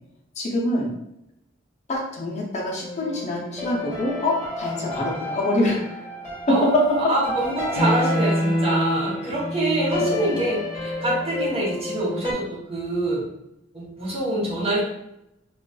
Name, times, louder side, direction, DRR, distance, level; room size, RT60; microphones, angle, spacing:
voice 1, 0.4-0.9 1.9-6.0 10.0-10.3, left 1 dB, 35° left, -2 dB, 0.5 m, -26 dB
sound 1, 2.8-12.3, left 1 dB, 15° right, 1.4 m, -28 dB
voice 2, 6.5-13.3 13.7-14.8, right 1 dB, 30° right, -5 dB, 0.7 m, -25 dB
2.5 x 2.3 x 2.2 m, 0.83 s
head